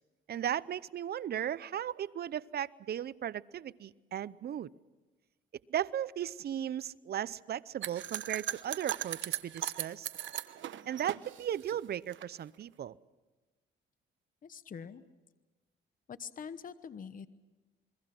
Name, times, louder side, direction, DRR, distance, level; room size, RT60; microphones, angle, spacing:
voice 1, 0.3-4.7 5.7-10.1 10.9-13.0, right 10 dB, 55° right, 18 dB, 0.7 m, -36 dB
sound 1, 7.8-12.2, right 12 dB, 70° right, 1.0 m, -38 dB
voice 2, 14.4-15.0 16.1-17.3, left 7 dB, 45° left, 13 dB, 1.1 m, -44 dB
28.0 x 22.0 x 6.1 m, 1.2 s
cardioid pair, 90°, 20 cm